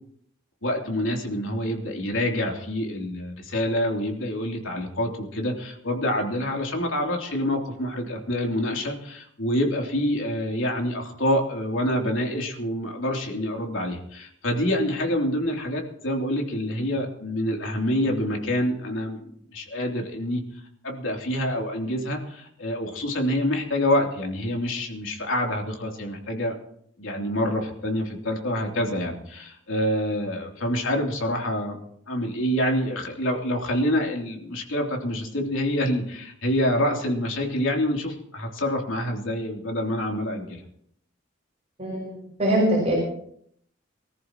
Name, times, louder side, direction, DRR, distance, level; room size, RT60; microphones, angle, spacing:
voice 1, 0.6-19.2 19.5-20.4 20.8-26.5 27.0-31.8 32.1-40.6, left 1 dB, 80° left, 0 dB, 3.3 m, -26 dB
voice 2, 41.8-42.1 42.4-42.9, right 1 dB, 35° right, -4 dB, 6.2 m, -22 dB
25.0 x 14.0 x 3.1 m, 0.66 s
head